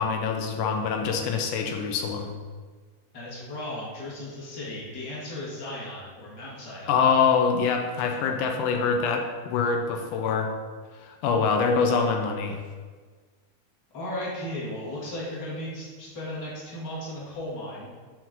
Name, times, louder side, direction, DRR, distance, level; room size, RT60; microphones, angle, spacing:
voice 1, 0.0-2.3 6.9-10.5 11.0-12.6, left 5 dB, 90° left, 3 dB, 2.2 m, -24 dB
voice 2, 3.1-7.0 13.9-17.9, left 1 dB, 40° left, -6 dB, 2.1 m, -36 dB
7.5 x 4.6 x 3.8 m, 1.5 s
omnidirectional pair, 3.5 m